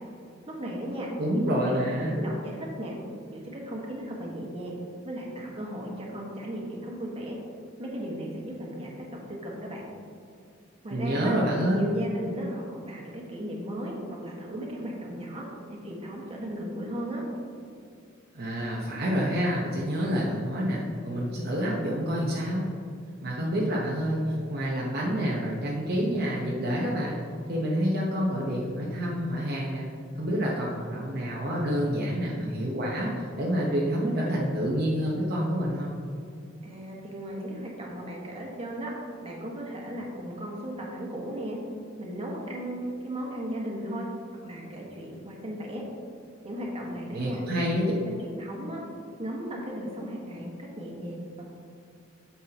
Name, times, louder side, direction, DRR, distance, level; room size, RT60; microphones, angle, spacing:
voice 1, 0.6-3.0 3.3-4.8 5.0-7.4 7.8-9.9 10.8-11.3 11.7-17.3 36.6-38.9 39.2-41.6 42.0-44.1 44.4-45.8 46.4-47.4 48.0-48.8 49.2-51.4, right 1 dB, 30° right, -2 dB, 1.5 m, -36 dB
voice 2, 1.2-2.2 10.9-11.8 18.3-22.6 23.2-29.9 30.2-36.0 47.1-47.9, equal, 55° right, -4 dB, 1.0 m, -28 dB
9.5 x 7.2 x 2.9 m, 2.4 s
head